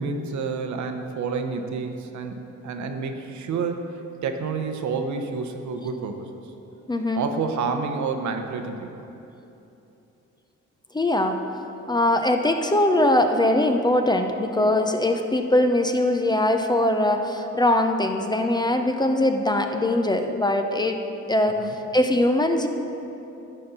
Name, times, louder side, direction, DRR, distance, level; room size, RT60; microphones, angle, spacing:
voice 1, 0.0-3.9 4.2-6.3 7.2-8.9 21.6-21.7, right 5 dB, 70° right, 6 dB, 0.9 m, -29 dB
voice 2, 6.9-7.2 10.9-11.4 11.9-21.0 21.3-21.6 21.9-22.7, left 1 dB, 15° left, 5 dB, 0.5 m, -21 dB
11.0 x 4.3 x 6.8 m, 2.9 s
cardioid pair, 90°, 30 cm